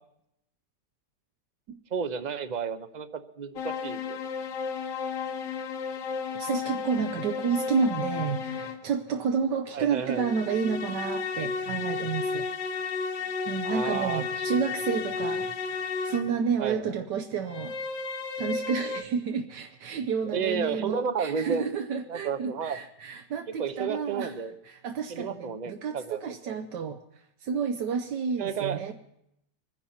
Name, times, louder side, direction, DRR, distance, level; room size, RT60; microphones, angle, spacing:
voice 1, 1.9-4.2 9.7-10.3 13.6-14.6 14.9-15.0 16.6-16.8 20.3-21.6 22.1-22.8 23.6-24.5 25.1-26.2 26.4-26.6 28.4-28.8, right 6 dB, 45° right, 11 dB, 0.5 m, -32 dB
sound 1, 3.6-8.9 10.0-16.4 17.4-19.0, left 5 dB, 75° left, 1.5 m, -33 dB
voice 2, 6.4-12.4 13.4-15.8 16.0-17.8 18.4-24.3 24.7-27.0 27.4-28.9, right 6 dB, 85° right, 5 dB, 1.5 m, -30 dB
24.5 x 10.5 x 4.3 m, 0.77 s
omnidirectional pair, 1.8 m